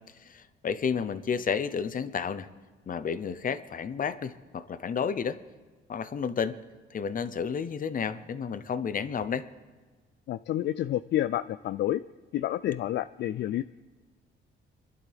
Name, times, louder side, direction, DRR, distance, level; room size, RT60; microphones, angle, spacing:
voice 1, 0.2-2.5 2.9-5.4 5.9-6.5 6.9-9.5, left 6 dB, 45° left, 13 dB, 0.8 m, -31 dB
voice 2, 10.3-12.0 12.3-13.6, left 13 dB, 60° left, 13 dB, 0.4 m, -29 dB
26.0 x 11.0 x 3.5 m, 1.4 s
cardioid pair, 90°, 20 cm